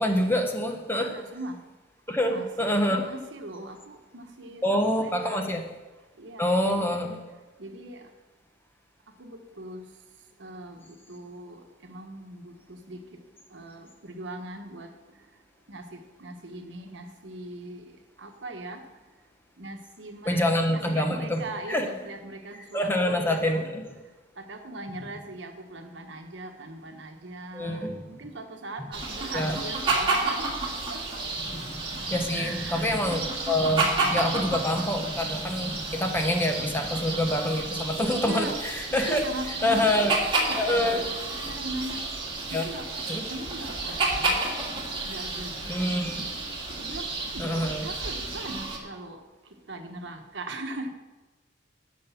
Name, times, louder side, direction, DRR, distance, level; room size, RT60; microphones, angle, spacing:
voice 1, 0.0-1.1 2.1-2.3 2.6-3.0 4.6-5.6 6.4-7.2 20.3-21.4 21.7-21.9 22.7-23.9 27.5-28.0 29.3-29.6 31.4-39.2 39.6-40.1 40.6-41.0 42.5-42.6 43.1-43.2 45.7-46.3 47.4-47.8, left 1 dB, 10° left, 4 dB, 0.9 m, -26 dB
voice 2, 0.9-1.6 2.1-5.5 6.2-6.9 7.6-8.1 9.2-9.9 10.4-13.2 13.5-14.9 15.7-17.9 18.2-18.8 19.6-20.4 20.7-23.6 24.4-30.5 30.9-31.0 32.3-33.0 38.1-38.5 38.9-42.0 42.4-42.9 43.3-44.4 45.0-46.0 46.8-49.2 49.7-50.9, right 2 dB, 65° right, 5 dB, 1.2 m, -40 dB
sound 1, 28.9-48.8, right 3 dB, 30° right, 2.1 m, -31 dB
11.5 x 5.3 x 7.0 m, 1.2 s
head